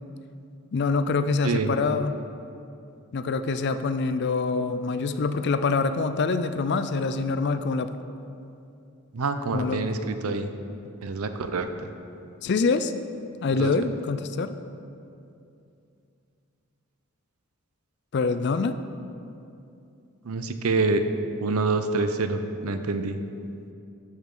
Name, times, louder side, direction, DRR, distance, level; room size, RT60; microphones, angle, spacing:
voice 1, 0.7-2.1 3.1-7.9 9.5-9.8 12.4-12.9 13.4-14.5 18.1-18.8, left 4 dB, 50° left, 10 dB, 0.4 m, -25 dB
voice 2, 9.1-10.5 11.0-11.9 13.6-13.7 20.2-21.0 21.4-23.2, right 3 dB, 85° right, 9 dB, 0.6 m, -26 dB
12.0 x 7.2 x 3.8 m, 2.6 s
head